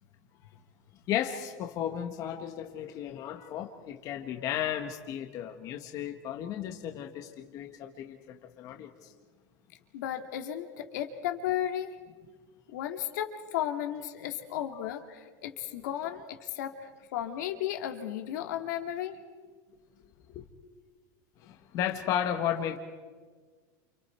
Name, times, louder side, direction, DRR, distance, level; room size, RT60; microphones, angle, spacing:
voice 1, 1.1-9.1 14.5-14.9 20.3-20.4 21.4-22.8, left 10 dB, 35° left, 1.7 m, -34 dB
voice 2, 9.9-11.9 12.7-19.2, left 11 dB, 75° left, 2.5 m, -34 dB
29.0 x 29.0 x 4.6 m
supercardioid pair, 160°, 10 cm